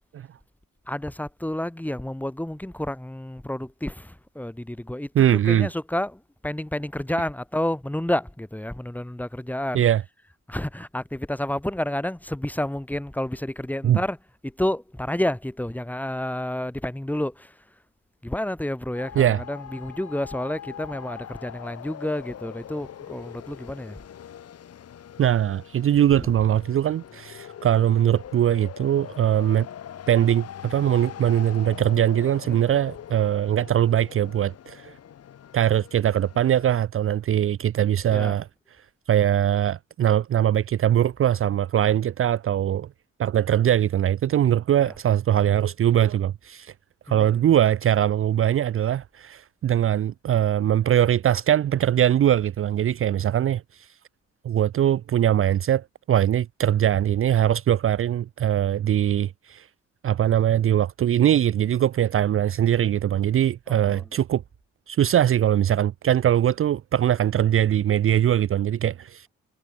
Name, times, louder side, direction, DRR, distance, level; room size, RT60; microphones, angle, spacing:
voice 1, 0.9-5.1 5.4-9.8 10.5-14.2 14.4-17.5 18.2-24.0 32.5-32.6 38.1-38.4 44.8-44.9 47.1-47.4 63.7-64.0, left 1 dB, 5° left, 2.6 m, -30 dB
voice 2, 5.1-5.7 9.7-10.0 13.8-14.0 19.2-19.4 25.2-29.7 30.1-34.9 35.5-38.5 39.1-42.9 43.2-46.7 47.1-53.9 54.4-59.7 60.0-64.4 64.9-69.3, right 11 dB, 45° right, 0.6 m, -21 dB
sound 1, 18.9-36.8, left 9 dB, 55° left, 1.6 m, -42 dB
cardioid pair, 90°, 30 cm